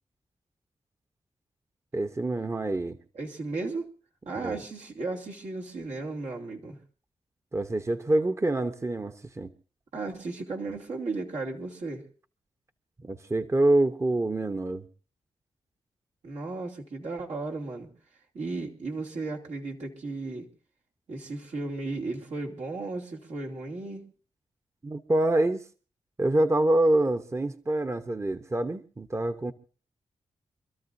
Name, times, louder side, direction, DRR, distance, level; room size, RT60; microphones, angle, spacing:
voice 1, 1.9-3.0 4.3-4.6 7.5-9.5 13.0-14.8 24.8-25.6 26.2-29.5, right 1 dB, 25° right, 0.9 m, -26 dB
voice 2, 3.1-3.9 4.3-6.8 9.9-12.0 16.2-17.9 18.3-20.5 21.1-24.0, right 3 dB, 80° right, 2.7 m, -35 dB
27.0 x 13.0 x 2.7 m
cardioid pair, 55°, 12 cm